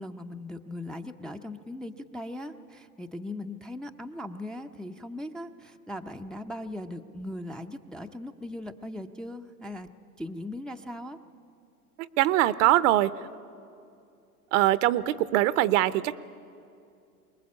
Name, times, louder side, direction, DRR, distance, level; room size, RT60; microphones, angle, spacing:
voice 1, 0.0-9.9 10.2-11.2, left 1 dB, ahead, 4 dB, 0.5 m, -39 dB
voice 2, 12.0-13.3 14.5-16.2, right 15 dB, 55° right, 16 dB, 0.9 m, -23 dB
23.5 x 21.0 x 8.4 m, 2.5 s
hypercardioid pair, 105°, 46 cm